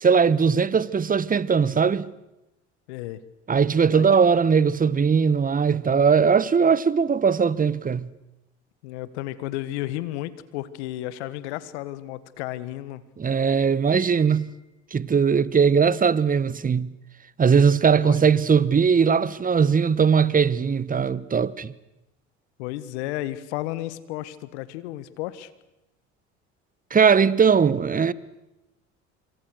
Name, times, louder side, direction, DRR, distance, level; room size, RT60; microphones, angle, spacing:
voice 1, 0.0-2.1 3.5-8.1 13.2-14.5 14.9-16.9 17.4-21.7 26.9-28.1, right 6 dB, 25° right, 1.1 m, -20 dB
voice 2, 2.9-3.2 3.9-4.1 8.8-13.0 18.0-18.2 22.6-25.5, left 15 dB, 75° left, 1.6 m, -33 dB
Piano, 14.0-15.0, right 9 dB, 60° right, 3.4 m, -48 dB
26.5 x 24.5 x 6.5 m
hypercardioid pair, 70°, 34 cm